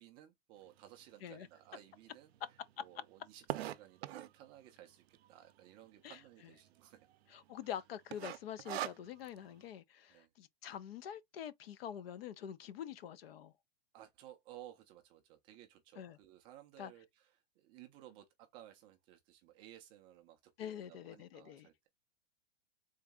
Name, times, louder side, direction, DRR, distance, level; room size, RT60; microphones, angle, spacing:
voice 1, 0.0-2.3 2.8-7.1 10.1-10.3 13.9-21.9, right 12 dB, 15° right, 0.3 m, -57 dB
sound 1, 1.0-1.1 1.7-1.8 1.9-2.0 2.3-4.4 5.1-5.5 5.8-5.9 6.1-6.3 6.8-7.2 7.4-7.7 8.1-9.4, right 13 dB, 85° right, 0.5 m, -41 dB
voice 2, 7.3-13.5 16.0-16.2 16.8-16.9 20.6-21.7, left 9 dB, 70° left, 0.6 m, -46 dB
3.9 x 2.6 x 3.4 m
hypercardioid pair, 150°, 31 cm